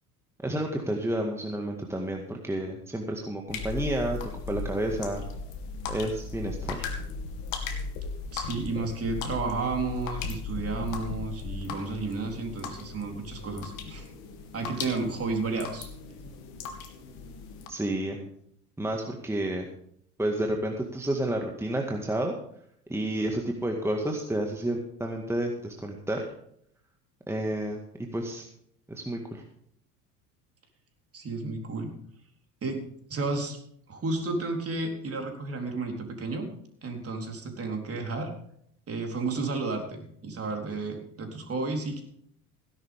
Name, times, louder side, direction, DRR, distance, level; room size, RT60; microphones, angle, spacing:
voice 1, 0.4-4.2 4.5-5.2 5.9-6.9 17.7-18.2 18.8-19.7 20.2-22.3 22.9-26.2 27.3-27.8 28.1-28.4 28.9-29.4, right 1 dB, 5° right, 2 dB, 1.9 m, -30 dB
sound 1, 3.5-17.7, left 4 dB, 60° left, 2.4 m, -37 dB
voice 2, 8.3-14.1 14.5-15.9 31.1-31.9 32.6-32.8 33.1-33.6 33.9-36.5 36.8-38.3 38.9-42.0, right 3 dB, 30° right, 3 dB, 3.9 m, -32 dB
17.0 x 11.5 x 3.7 m, 0.68 s
hypercardioid pair, 75°, 46 cm